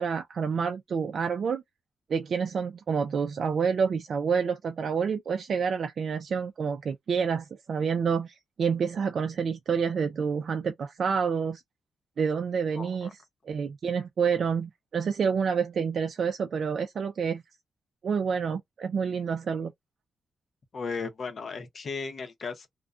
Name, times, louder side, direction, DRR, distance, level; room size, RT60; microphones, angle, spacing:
voice 1, 0.0-1.6 2.1-11.6 12.2-17.4 18.0-19.7, right 6 dB, 65° right, 0.3 m, -28 dB
voice 2, 12.8-13.1 20.7-22.7, left 4 dB, 55° left, 0.7 m, -35 dB
2.3 x 2.1 x 2.5 m
wide cardioid pair, 110°, 0 cm